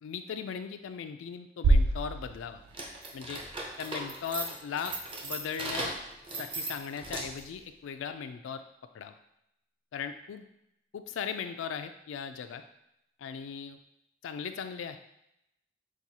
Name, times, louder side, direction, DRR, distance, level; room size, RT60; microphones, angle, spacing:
voice 1, 0.0-2.6 3.1-3.4 3.8-5.0 5.2-6.0 6.4-8.6 8.9-9.2 9.9-10.5 10.9-12.6 13.2-13.8 14.2-15.0, left 7 dB, 70° left, 8 dB, 0.3 m, -38 dB
sound 1, 1.6-3.7, right 2 dB, 90° right, 0.3 m, -27 dB
sound 2, 2.7-7.5, right 2 dB, 25° right, 0.5 m, -38 dB
5.9 x 2.3 x 2.7 m, 0.82 s
head